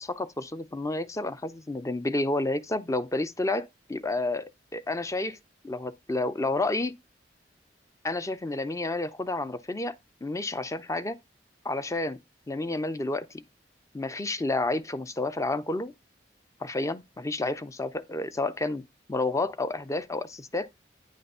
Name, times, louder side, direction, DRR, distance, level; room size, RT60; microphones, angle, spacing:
voice 1, 0.0-5.4 5.6-6.9 8.0-11.2 11.6-12.2 12.5-13.3 13.9-15.9 16.6-18.8 19.1-20.7, left 2 dB, 20° left, 0.5 m, -30 dB
9.4 x 3.4 x 5.4 m
head